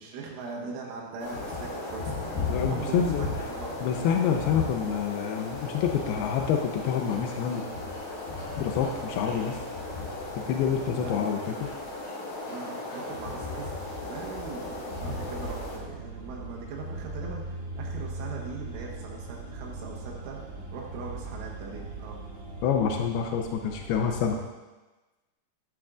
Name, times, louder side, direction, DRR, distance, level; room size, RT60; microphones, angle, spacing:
voice 1, 0.0-2.2 2.6-3.9 11.0-11.2 12.5-22.2, right 4 dB, 85° right, -3 dB, 3.8 m, -40 dB
sound 1, 1.2-15.8, left 2 dB, 65° left, 4.5 m, -35 dB
voice 2, 2.5-3.3 3.8-7.6 8.6-9.6 10.4-11.7 22.6-24.4, left 7 dB, 90° left, 3 dB, 2.2 m, -27 dB
sound 2, 14.9-24.3, right 2 dB, 60° right, 4.1 m, -39 dB
11.5 x 10.5 x 2.5 m, 1.2 s
omnidirectional pair, 5.4 m